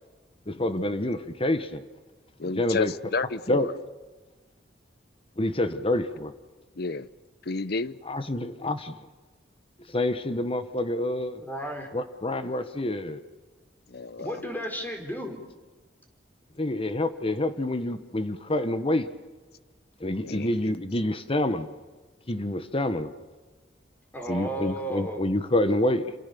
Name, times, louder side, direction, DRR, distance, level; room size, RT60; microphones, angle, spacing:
voice 1, 0.5-1.8 2.4-2.9 3.5-3.7 5.4-6.3 8.0-9.0 9.9-11.4 11.9-13.2 16.6-19.1 20.0-21.7 22.3-23.1 24.3-26.1, left 1 dB, 30° left, 1.3 m, -27 dB
voice 2, 2.4-3.7 6.8-7.1 7.4-7.9 13.9-14.4 20.2-20.7, left 3 dB, 60° left, 0.9 m, -31 dB
voice 3, 11.4-11.9 14.2-15.4 24.1-25.2, equal, 10° left, 4.3 m, -33 dB
28.5 x 27.0 x 7.0 m
head